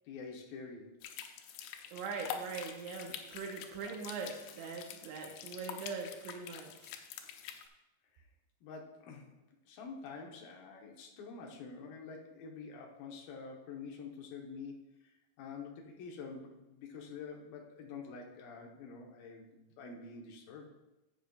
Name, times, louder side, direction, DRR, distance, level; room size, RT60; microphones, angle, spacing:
voice 1, 0.1-1.0 8.6-9.3 9.7-20.7, left 5 dB, 70° left, 1 dB, 2.3 m, -47 dB
sound 1, 1.0-7.7, left 8 dB, 90° left, 3.1 m, -46 dB
voice 2, 1.9-6.9, right 5 dB, 85° right, 1 dB, 3.3 m, -42 dB
11.5 x 8.7 x 2.4 m, 1.0 s
omnidirectional pair, 5.3 m